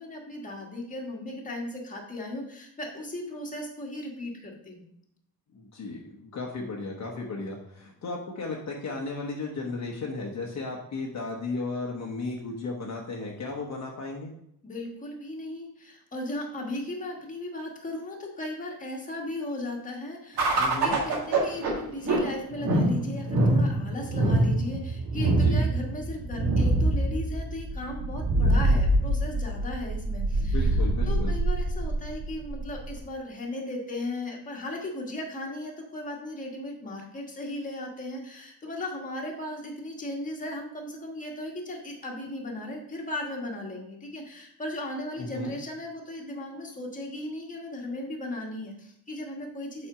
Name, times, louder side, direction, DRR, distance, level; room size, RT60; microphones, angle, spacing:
voice 1, 0.0-4.9 14.6-30.8 31.1-49.9, left 1 dB, 20° left, -1 dB, 1.4 m, -36 dB
voice 2, 5.5-14.3 20.5-21.0 25.3-25.7 30.4-31.4 45.2-45.5, left 3 dB, 45° left, -1 dB, 1.0 m, -35 dB
sound 1, 20.4-33.0, right 2 dB, 75° right, 1.9 m, -25 dB
7.3 x 4.3 x 4.9 m, 0.74 s
wide cardioid pair, 175°, 38 cm